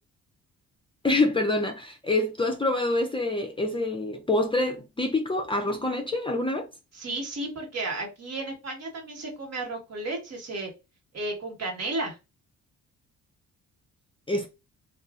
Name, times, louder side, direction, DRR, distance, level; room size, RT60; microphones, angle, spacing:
voice 1, 1.0-6.7 14.3-14.5, left 2 dB, 15° left, 0.5 m, -26 dB
voice 2, 6.9-10.7 11.1-12.2, right 2 dB, 50° right, 1.4 m, -33 dB
2.7 x 2.4 x 2.4 m
cardioid pair, 80°, 32 cm